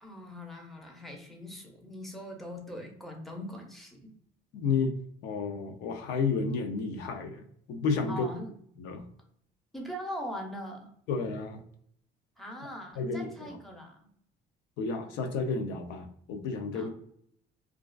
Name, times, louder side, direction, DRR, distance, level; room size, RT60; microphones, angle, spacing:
voice 1, 0.0-4.1 8.1-8.5 9.7-10.9 12.4-14.1 16.7-16.9, equal, ahead, 1 dB, 0.6 m, -41 dB
voice 2, 4.5-4.9 5.2-7.4 7.7-8.3 8.8-9.0 11.1-11.6 13.0-13.5 14.8-16.9, left 4 dB, 90° left, 6 dB, 0.4 m, -31 dB
2.3 x 2.3 x 2.2 m, 0.65 s
cardioid pair, 110°, 17 cm